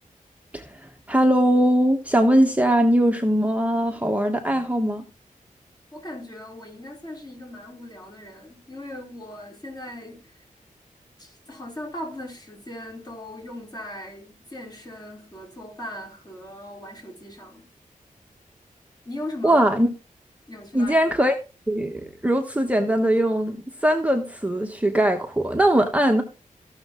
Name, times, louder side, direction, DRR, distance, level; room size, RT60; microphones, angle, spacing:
voice 1, 1.1-5.0 19.4-19.9 20.7-21.3 21.7-23.6 23.8-26.2, right 1 dB, 10° right, 1.1 m, -20 dB
voice 2, 5.9-10.4 11.2-17.7 19.0-19.6 20.5-21.0, left 1 dB, 30° left, 3.9 m, -38 dB
15.0 x 6.5 x 3.7 m
wide cardioid pair, 105°, 14 cm